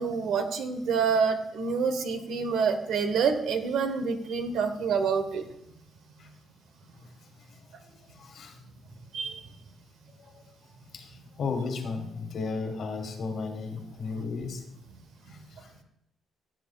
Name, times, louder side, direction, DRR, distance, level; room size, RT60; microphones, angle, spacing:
voice 1, 0.0-5.4 9.1-9.4, right 5 dB, 80° right, 8 dB, 1.1 m, -27 dB
voice 2, 8.2-8.5 10.9-14.6 15.6-15.7, left 4 dB, 60° left, 5 dB, 1.5 m, -34 dB
15.0 x 7.6 x 2.4 m, 0.78 s
cardioid pair, 90°, 0 cm